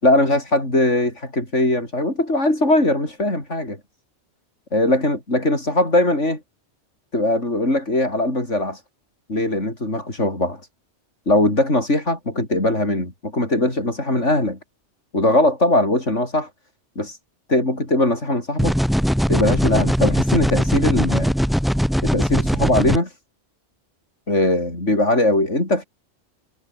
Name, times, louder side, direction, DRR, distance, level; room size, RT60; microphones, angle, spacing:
voice 1, 0.0-3.8 4.7-6.4 7.1-8.8 9.3-10.6 11.3-14.6 15.1-16.5 17.0-17.2 17.5-18.8 19.3-21.3 22.0-23.1 24.3-25.8, left 1 dB, 75° left, 7.5 m, -20 dB
sound 1, 18.6-23.0, equal, ahead, 7.0 m, -20 dB
omnidirectional pair, 1.2 m